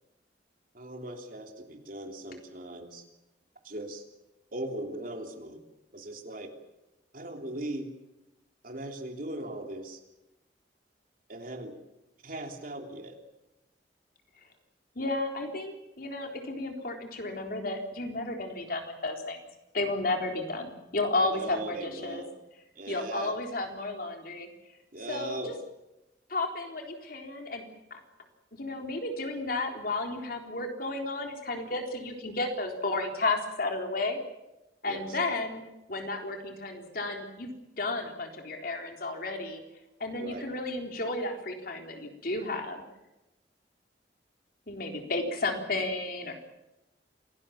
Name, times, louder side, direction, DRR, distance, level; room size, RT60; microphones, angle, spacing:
voice 1, 0.7-3.0 3.6-4.0 4.5-5.6 5.9-6.5 7.1-7.9 8.6-10.0 11.3-11.7 12.2-13.2 21.3-22.3 22.8-23.3 24.9-25.5 34.9-35.2 40.2-40.4, right 1 dB, 50° right, 3 dB, 3.4 m, -39 dB
voice 2, 15.0-19.4 19.7-22.2 22.9-24.5 25.1-25.4 26.3-27.6 27.9-28.0 28.5-34.2 34.8-35.6 35.9-37.5 37.8-39.6 40.0-42.8 44.7-46.3, left 2 dB, 55° left, 3 dB, 3.9 m, -32 dB
27.5 x 18.5 x 7.2 m, 0.97 s
head